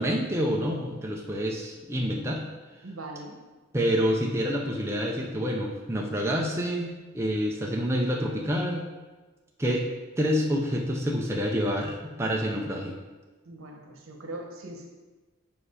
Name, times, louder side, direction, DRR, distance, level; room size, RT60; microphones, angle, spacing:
voice 1, 0.0-2.4 3.7-8.8 9.6-9.9 10.2-13.0, equal, 10° right, -1 dB, 0.5 m, -27 dB
voice 2, 2.8-3.4 13.4-15.0, right 1 dB, 75° right, 2 dB, 1.0 m, -41 dB
5.1 x 5.0 x 4.8 m, 1.3 s
head